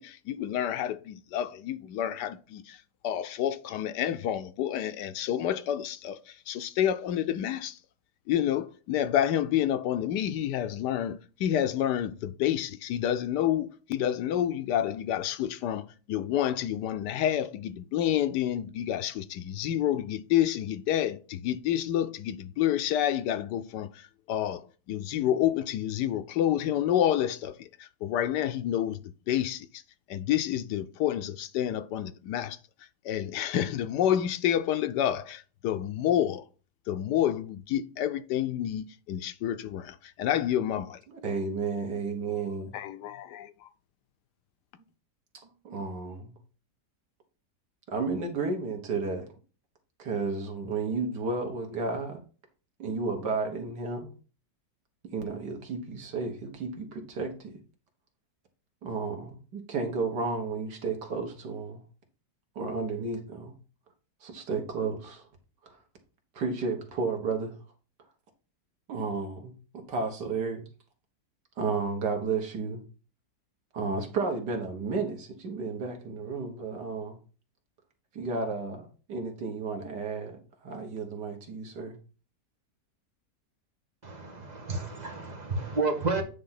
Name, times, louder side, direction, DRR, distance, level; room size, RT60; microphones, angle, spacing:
voice 1, 0.0-2.8 3.0-7.8 8.3-23.9 24.3-29.0 29.3-29.7 30.1-32.6 33.0-36.4 36.9-41.0 42.7-43.5, left 11 dB, 80° left, 1.2 m, -29 dB
voice 2, 41.1-42.7 45.3-46.3 47.9-49.3 50.0-52.2 52.8-54.1 55.0-57.6 58.8-61.8 62.6-63.5 64.2-65.3 65.6-65.8 66.4-67.6 68.9-70.6 71.6-72.8 73.7-77.2 78.1-82.0, right 4 dB, 80° right, 2.1 m, -32 dB
voice 3, 84.0-86.2, right 3 dB, 25° right, 1.6 m, -31 dB
9.3 x 3.5 x 5.7 m
omnidirectional pair, 1.8 m